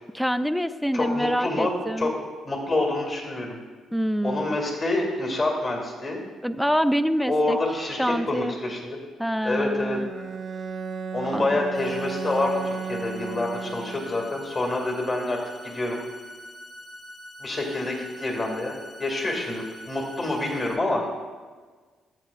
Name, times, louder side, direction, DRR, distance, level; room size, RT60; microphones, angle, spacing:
voice 1, 0.1-2.1 3.9-4.6 6.4-7.6 8.0-8.6 9.2-10.1 11.3-11.6, equal, ahead, 12 dB, 0.4 m, -26 dB
voice 2, 0.9-1.7 2.0-2.1 2.4-3.6 4.2-6.2 7.3-9.0 9.4-10.0 11.1-15.4 15.6-16.0 17.4-21.0, left 2 dB, 40° left, 0 dB, 2.2 m, -27 dB
Bowed string instrument, 9.9-14.3, right 5 dB, 50° right, 0.5 m, -34 dB
sound 1, 11.7-20.7, left 1 dB, 85° left, 2.2 m, -44 dB
13.5 x 8.2 x 2.5 m, 1.5 s
cardioid pair, 90°, 0 cm